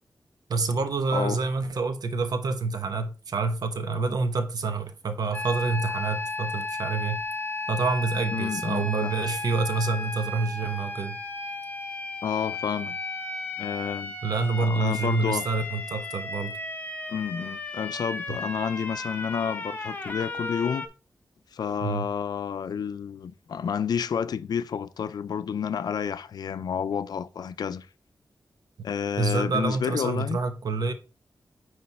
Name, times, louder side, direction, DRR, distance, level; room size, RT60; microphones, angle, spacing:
voice 1, 0.5-7.2 7.7-11.2 14.2-16.5 18.3-18.4 21.8-22.0 29.2-30.9, right 3 dB, 75° right, 0.8 m, -27 dB
sound 1, 5.3-20.9, left 2 dB, 25° left, 1.0 m, -34 dB
voice 2, 8.3-9.1 12.2-13.0 13.6-14.1 14.6-15.5 17.1-20.9 21.5-27.9 28.8-30.4, left 7 dB, 80° left, 0.4 m, -30 dB
9.6 x 3.2 x 4.3 m
wide cardioid pair, 145°, 7 cm